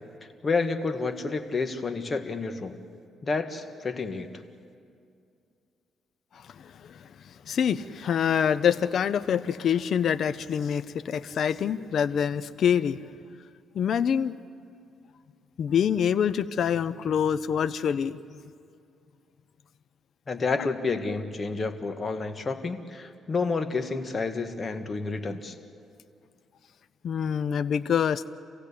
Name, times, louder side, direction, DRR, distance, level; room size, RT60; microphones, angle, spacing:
voice 1, 0.2-2.8 3.2-4.3 20.3-25.5, left 4 dB, 35° left, 7 dB, 1.7 m, -30 dB
voice 2, 6.6-7.0 7.5-13.0 13.7-14.3 15.6-18.2 27.0-28.3, left 8 dB, 60° left, 14 dB, 0.7 m, -25 dB
27.5 x 16.0 x 8.5 m, 2.4 s
cardioid pair, 90°, 0 cm